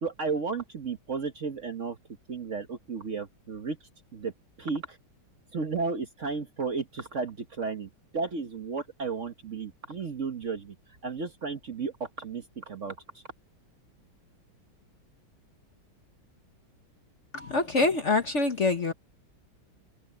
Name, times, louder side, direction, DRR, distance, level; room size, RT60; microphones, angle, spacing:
voice 1, 0.0-2.0 2.3-3.8 4.1-4.3 4.6-5.0 5.5-10.8 11.0-13.2, right 4 dB, 45° right, 1.3 m, -33 dB
voice 2, 17.3-18.9, left 3 dB, 40° left, 1.3 m, -25 dB
omnidirectional pair, 2.2 m